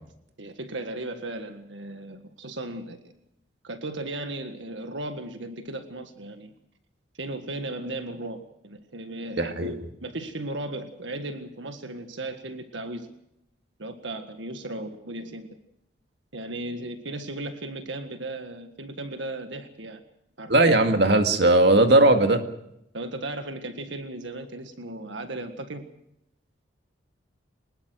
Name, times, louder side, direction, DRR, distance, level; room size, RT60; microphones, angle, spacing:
voice 1, 0.4-3.0 3.6-6.5 7.2-9.8 10.0-13.1 13.8-15.5 16.3-20.0 20.4-20.7 22.9-25.8, right 2 dB, 85° right, 7 dB, 1.8 m, -36 dB
voice 2, 9.4-9.8 20.5-22.4, right 2 dB, 65° right, 6 dB, 2.1 m, -18 dB
22.5 x 20.0 x 6.4 m, 0.79 s
head